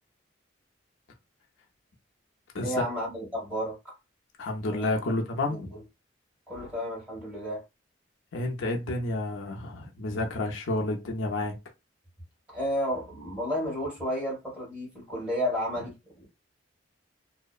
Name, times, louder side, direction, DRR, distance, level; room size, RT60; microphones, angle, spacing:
voice 1, 2.6-3.9 4.6-5.0 5.5-5.8 6.5-7.6 12.5-16.3, equal, 5° right, 1.3 m, -32 dB
voice 2, 4.4-5.7 8.3-11.6, left 2 dB, 75° left, 0.5 m, -30 dB
2.7 x 2.0 x 2.3 m
head